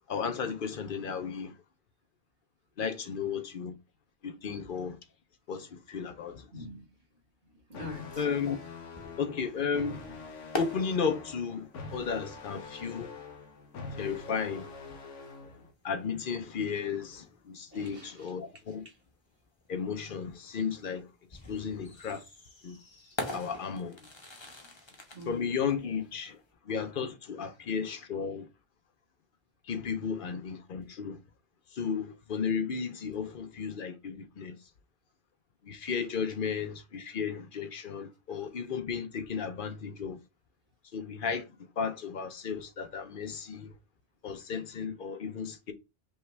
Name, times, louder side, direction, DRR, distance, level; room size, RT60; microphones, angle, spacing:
voice 1, 0.1-1.5 2.8-3.7 4.2-5.0 5.5-6.5 8.2-8.6 9.2-10.0 10.6-13.1 14.0-14.7 15.5-18.9 19.7-22.2 22.6-22.8 23.3-24.0 25.3-28.5 29.6-31.2 31.7-34.7 35.6-40.2 40.9-43.7 44.2-45.7, left 6 dB, 55° left, 0.7 m, -34 dB
voice 2, 6.1-7.0 7.4-8.3 13.5-13.7 15.2-15.3 17.7-18.3 18.9-19.0 24.0-24.1 24.4-24.8 25.1-25.4, left 2 dB, 50° right, 1.7 m, -47 dB
sound 1, 7.7-15.7, left 4 dB, 80° left, 1.2 m, -45 dB
sound 2, 8.5-26.5, left 2 dB, 25° left, 0.8 m, -45 dB
5.4 x 2.4 x 3.2 m
omnidirectional pair, 1.2 m